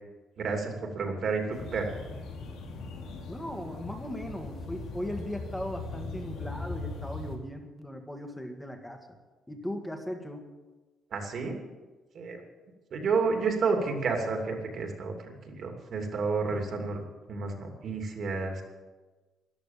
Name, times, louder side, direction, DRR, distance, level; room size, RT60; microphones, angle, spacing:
voice 1, 0.4-1.9 11.1-11.6 12.1-12.4 12.9-17.0 17.3-18.6, right 4 dB, 50° right, 3 dB, 2.8 m, -30 dB
sound 1, 1.5-7.3, left 3 dB, 90° left, 3.1 m, -39 dB
voice 2, 3.3-9.2 9.5-10.5, left 1 dB, 5° left, 4 dB, 1.8 m, -38 dB
14.0 x 11.5 x 7.3 m, 1.3 s
cardioid pair, 140°, 0 cm